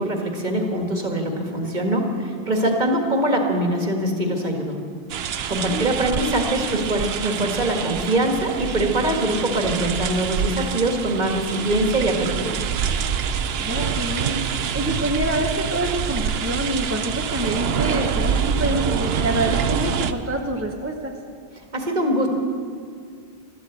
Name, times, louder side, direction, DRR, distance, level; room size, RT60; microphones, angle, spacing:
voice 1, 0.0-4.8 5.5-12.6 21.7-22.3, right 1 dB, 45° right, 2 dB, 1.9 m, -23 dB
sound 1, 5.1-20.1, right 7 dB, 75° right, 0.9 m, -26 dB
voice 2, 13.6-14.4 14.7-21.1, right 1 dB, 15° right, 2 dB, 1.0 m, -26 dB
13.5 x 12.5 x 8.1 m, 2.1 s
omnidirectional pair, 1.0 m